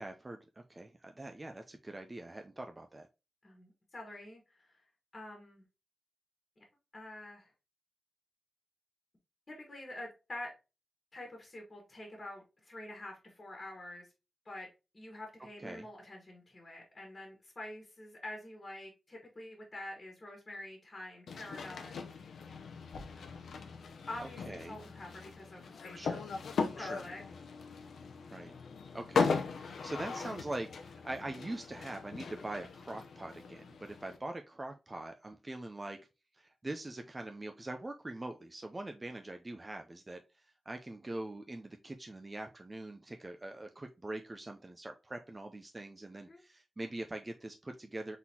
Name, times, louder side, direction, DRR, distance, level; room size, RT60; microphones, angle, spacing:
voice 1, 0.0-3.1 15.6-15.9 24.2-24.8 25.9-26.2 26.8-27.0 28.3-28.6 28.9-36.0 36.3-48.2, right 2 dB, 20° right, 5 dB, 0.4 m, -43 dB
voice 2, 3.4-4.8 5.1-5.6 6.9-7.5 9.5-10.5 11.1-14.1 14.4-14.7 14.9-22.0 23.1-23.6 24.1-26.2 26.8-27.2 46.1-46.4, left 1 dB, 30° left, 0 dB, 1.6 m, -47 dB
sound 1, 21.3-34.2, left 5 dB, 85° left, 0.7 m, -38 dB
4.0 x 3.8 x 2.8 m, 0.28 s
wide cardioid pair, 120°, 0 cm